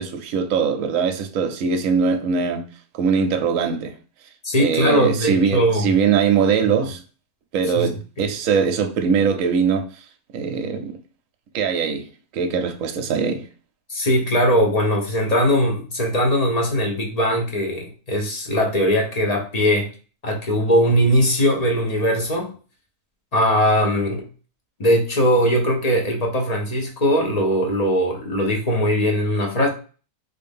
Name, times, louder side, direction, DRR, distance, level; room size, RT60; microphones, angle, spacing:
voice 1, 0.0-2.7 2.9-3.9 4.6-7.0 7.5-9.9 10.3-11.0 11.5-12.0 12.3-13.5, right 6 dB, 65° right, 0.9 m, -21 dB
voice 2, 4.4-5.9 7.7-8.3 13.9-19.9 20.2-22.5 23.3-24.3 24.8-29.7, equal, 40° left, 0.5 m, -20 dB
3.3 x 2.6 x 3.5 m
omnidirectional pair, 1.6 m